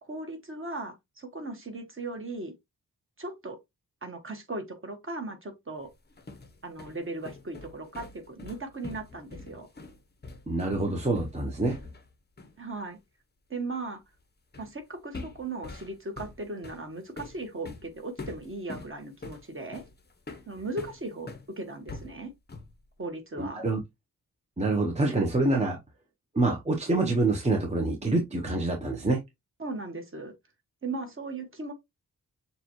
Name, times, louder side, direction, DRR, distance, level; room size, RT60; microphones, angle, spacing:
voice 1, 0.0-2.5 3.2-3.6 4.0-5.9 6.6-9.7 12.6-13.0 13.5-14.0 14.6-19.8 20.5-22.3 23.0-23.7 29.6-30.3 30.8-31.7, right 2 dB, 35° right, 1.2 m, -37 dB
sound 1, 5.9-12.1 12.4-12.6 14.5-14.8 15.1-21.5 21.9-22.8, left 3 dB, 25° left, 0.7 m, -44 dB
voice 2, 10.5-11.8 23.4-23.8 24.6-25.8 26.3-29.2, right 2 dB, 20° right, 0.8 m, -26 dB
6.7 x 2.3 x 3.0 m
wide cardioid pair, 125°, 37 cm